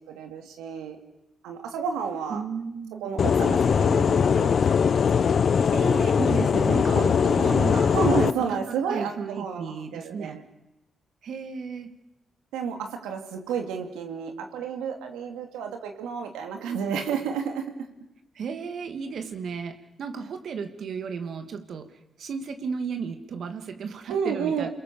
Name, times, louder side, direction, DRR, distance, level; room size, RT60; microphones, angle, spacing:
voice 1, 0.1-1.0 1.4-2.4 3.0-4.5 6.9-7.4 7.9-10.4 12.5-17.9 24.1-24.7, right 6 dB, 90° right, 5 dB, 2.7 m, -31 dB
voice 2, 2.3-3.0 5.7-7.9 8.5-10.4 11.2-11.9 18.3-21.9 22.2-24.7, right 5 dB, 70° right, 7 dB, 2.5 m, -34 dB
sound 1, 3.2-8.3, left 6 dB, 60° left, 0.9 m, -21 dB
29.0 x 21.5 x 7.1 m, 0.91 s
supercardioid pair, 50°, 0 cm